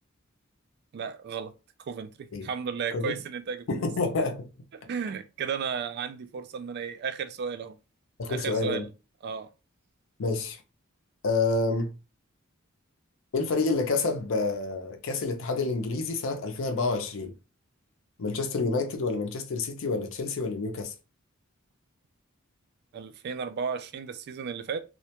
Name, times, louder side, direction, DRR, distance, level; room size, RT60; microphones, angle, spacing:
voice 1, 0.9-1.5 1.9-3.9 4.7-7.8 8.3-8.9 9.2-9.5 22.9-24.8, right 6 dB, 50° right, 0.3 m, -34 dB
voice 2, 3.7-4.5 8.2-8.9 10.2-10.6 11.2-11.9 13.3-17.3 18.2-20.9, left 3 dB, 65° left, 0.5 m, -28 dB
2.3 x 2.1 x 2.8 m
head